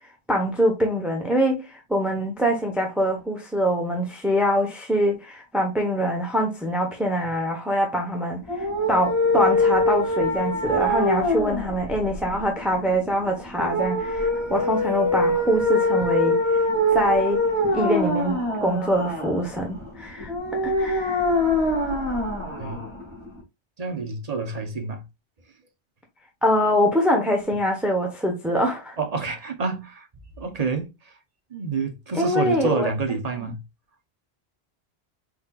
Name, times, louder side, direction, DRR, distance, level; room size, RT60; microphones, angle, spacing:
voice 1, 0.3-8.4 8.9-16.6 16.9-17.4 17.7-20.3 20.6-21.2 26.4-29.0 32.2-32.9, equal, ahead, 1.0 m, -24 dB
sound 1, 8.4-23.4, left 1 dB, 25° left, 2.0 m, -24 dB
voice 2, 23.8-25.0 29.0-30.1 30.4-31.2 31.5-33.6, right 4 dB, 35° right, 0.9 m, -28 dB
4.7 x 4.3 x 2.4 m
omnidirectional pair, 1.1 m